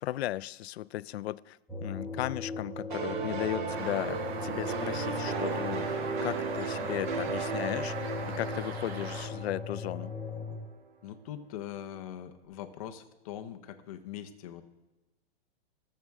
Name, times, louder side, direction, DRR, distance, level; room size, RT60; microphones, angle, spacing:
voice 1, 0.0-10.1, left 15 dB, 90° left, 19 dB, 0.5 m, -36 dB
sound 1, 1.7-10.6, left 4 dB, 5° left, 0.9 m, -39 dB
sound 2, 2.9-10.4, right 5 dB, 50° right, 1.0 m, -35 dB
sound 3, 3.7-9.3, right 5 dB, 85° right, 1.6 m, -43 dB
voice 2, 11.0-14.6, left 10 dB, 35° left, 7 dB, 0.8 m, -42 dB
23.0 x 7.7 x 3.6 m, 1.1 s
supercardioid pair, 175°, 31 cm